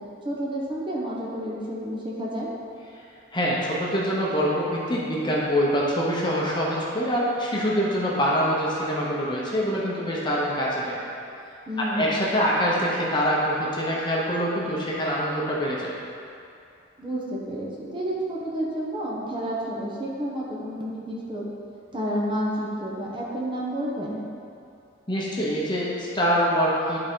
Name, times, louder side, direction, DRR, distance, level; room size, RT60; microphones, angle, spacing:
voice 1, 0.2-2.5 11.7-12.2 17.0-21.4 21.9-24.2, equal, 25° right, -5 dB, 1.0 m, -30 dB
voice 2, 3.3-10.9 11.9-15.9 25.1-27.0, equal, 25° left, -5 dB, 0.9 m, -24 dB
10.5 x 3.9 x 3.7 m, 2.6 s
head